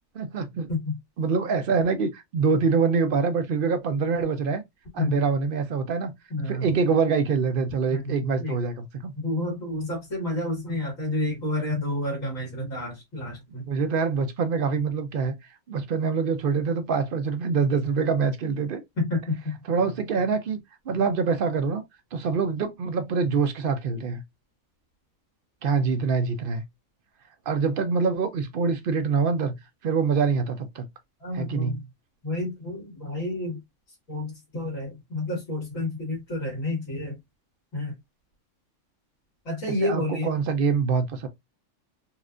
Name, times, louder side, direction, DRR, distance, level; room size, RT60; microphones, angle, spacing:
voice 1, 0.2-0.7 1.2-4.6 4.9-6.1 6.5-9.1 13.7-15.4 15.7-18.8 19.7-20.6 20.9-21.8 22.1-24.2 25.6-26.6 27.5-29.6 29.8-30.9 31.3-31.8 39.8-41.3, right 5 dB, 55° right, 0.6 m, -25 dB
voice 2, 6.3-6.7 7.9-8.6 9.1-13.7 19.0-19.6 31.2-31.8 32.2-33.6 34.1-37.1 37.7-37.9 39.5-40.3, left 2 dB, 80° left, 2.2 m, -30 dB
4.2 x 2.4 x 2.4 m
omnidirectional pair, 1.3 m